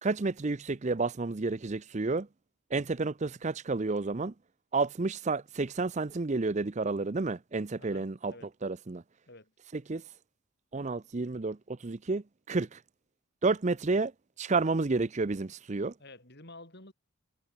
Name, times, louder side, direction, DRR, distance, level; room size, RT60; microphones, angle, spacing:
voice 1, 0.0-2.3 2.7-4.3 4.7-8.3 8.6-9.0 9.9-10.0 10.7-11.6 11.8-12.2 12.5-12.8 13.4-14.1 14.4-15.9, right 3 dB, 30° right, 0.5 m, -30 dB
voice 2, 7.8-8.5 9.3-9.5 16.0-16.9, left 2 dB, 50° left, 6.2 m, -51 dB
head